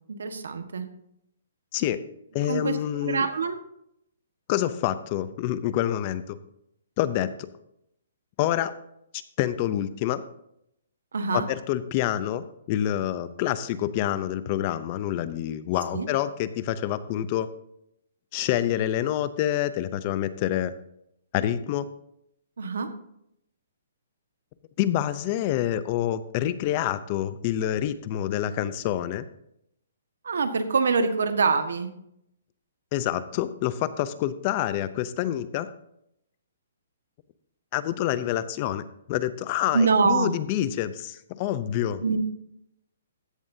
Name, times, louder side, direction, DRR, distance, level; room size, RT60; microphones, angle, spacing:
voice 1, 0.2-0.9 2.5-3.6 11.1-11.5 15.9-16.1 22.6-22.9 30.2-31.9 39.7-40.3 42.0-42.2, right 4 dB, 80° right, 9 dB, 1.5 m, -24 dB
voice 2, 2.3-3.3 4.5-6.4 7.0-7.5 8.4-8.7 9.4-10.2 11.3-17.5 18.3-20.7 21.3-21.9 24.8-29.3 32.9-35.7 37.7-42.0, left 12 dB, 25° left, 13 dB, 0.6 m, -27 dB
15.5 x 11.0 x 2.7 m, 0.76 s
hypercardioid pair, 175°, 0 cm